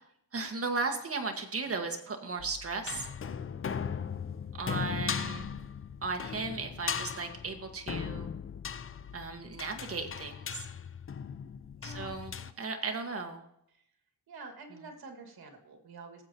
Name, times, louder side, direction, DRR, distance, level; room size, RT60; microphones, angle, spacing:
voice 1, 0.3-3.1 4.6-5.5 6.0-8.3 9.1-10.6 11.8-13.4, right 4 dB, 40° right, 3 dB, 1.6 m, -36 dB
sound 1, 2.4-12.5, left 7 dB, 35° left, 0.5 m, -38 dB
voice 2, 11.8-12.2 13.7-13.8 14.3-16.2, right 3 dB, 85° right, 4 dB, 2.1 m, -48 dB
18.5 x 7.8 x 3.0 m, 0.75 s
cardioid pair, 100°, 36 cm